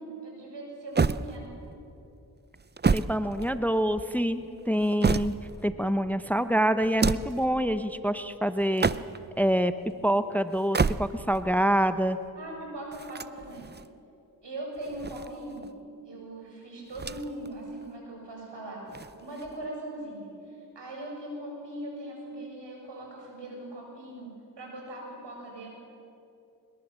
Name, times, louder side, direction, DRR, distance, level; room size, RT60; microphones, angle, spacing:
voice 1, 0.0-1.5 12.4-13.7 14.4-15.7 16.0-18.8 19.2-25.7, right 1 dB, 80° right, -1 dB, 7.4 m, -40 dB
sound 1, 1.0-1.8 2.6-3.9 4.6-5.7 6.8-7.5 8.6-9.4 10.5-11.4 12.9-13.9 14.8-15.7 16.9-17.5 17.8-17.9 18.9-19.7, right 4 dB, 25° right, 0.6 m, -29 dB
voice 2, 2.9-5.3 5.6-8.9 9.4-9.7 10.0-12.2, equal, 5° left, 11 dB, 0.9 m, -26 dB
22.0 x 21.5 x 7.4 m, 2.8 s
cardioid pair, 55°, 42 cm